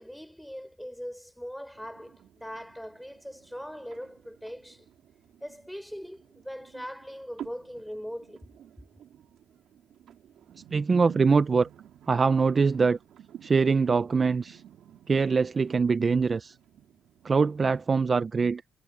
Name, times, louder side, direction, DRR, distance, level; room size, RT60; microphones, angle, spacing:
voice 1, 0.0-4.9 5.4-8.5 8.8-8.9, equal, ahead, 6.2 m, -41 dB
sound 1, 1.7-17.7, right 10 dB, 70° right, 5.1 m, -51 dB
voice 2, 10.7-11.7 12.1-13.0 13.4-14.6 15.1-16.5 17.2-18.6, right 4 dB, 35° right, 0.7 m, -23 dB
cardioid pair, 90°, 0 cm